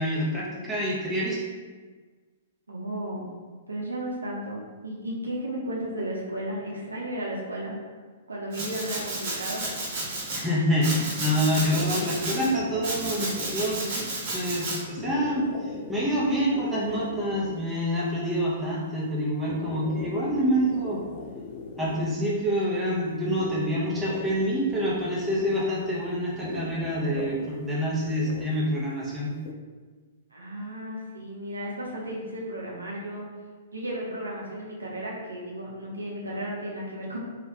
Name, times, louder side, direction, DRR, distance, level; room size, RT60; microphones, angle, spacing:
voice 1, 0.0-1.4 10.3-14.1 14.3-21.0 21.8-29.3, equal, 10° right, -6 dB, 0.8 m, -27 dB
voice 2, 2.7-3.3 3.7-7.8 8.3-9.7 30.3-33.3 33.7-37.2, right 1 dB, 85° right, -4 dB, 0.7 m, -34 dB
Domestic sounds home sounds, 8.5-10.4 10.8-12.5 12.8-14.8, right 2 dB, 50° right, 1.0 m, -32 dB
sound 1, 11.5-29.5, left 4 dB, 40° left, 0.3 m, -41 dB
3.1 x 2.4 x 3.0 m, 1.4 s
figure-of-eight pair, 115°, 0 cm